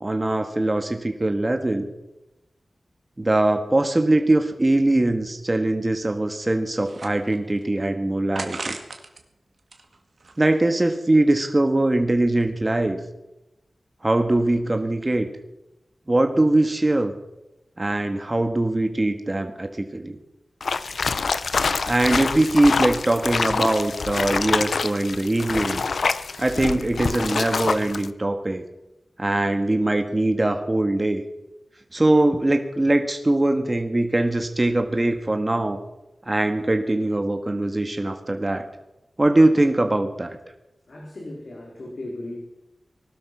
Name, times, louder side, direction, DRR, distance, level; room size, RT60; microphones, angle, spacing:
voice 1, 0.0-1.9 3.2-8.8 10.4-13.0 14.0-15.3 16.1-17.1 17.8-20.2 21.9-25.8 26.4-28.6 29.2-31.2 31.9-35.8 36.3-38.7 39.2-40.4, right 2 dB, 30° right, 6 dB, 1.7 m, -21 dB
sound 1, 5.2-5.3 5.6-5.7 6.3-7.6 8.3-9.2 9.6-10.8, right 3 dB, 65° right, 2.0 m, -37 dB
sound 2, 20.6-28.1, left 4 dB, 85° left, 0.7 m, -26 dB
voice 2, 40.9-42.4, left 1 dB, 65° left, -1 dB, 3.7 m, -36 dB
19.5 x 12.5 x 5.9 m, 0.94 s
wide cardioid pair, 60°, 0 cm